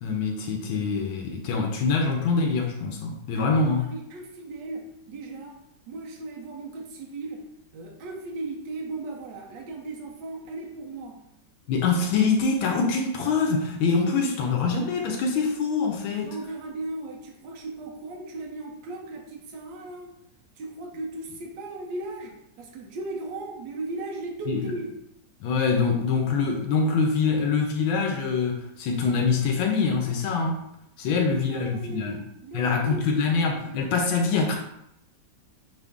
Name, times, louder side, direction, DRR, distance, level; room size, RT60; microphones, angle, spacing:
voice 1, 0.0-3.8 11.7-16.3 24.5-24.6 25.4-30.6 31.0-32.2 32.5-34.6, left 4 dB, 85° left, 2 dB, 1.4 m, -24 dB
voice 2, 3.3-5.6 5.9-7.5 7.7-11.2 16.1-20.2 20.6-24.9 31.1-33.4 33.7-33.8, right 2 dB, 70° right, 1 dB, 1.4 m, -37 dB
6.1 x 2.5 x 3.5 m, 0.79 s
omnidirectional pair, 2.1 m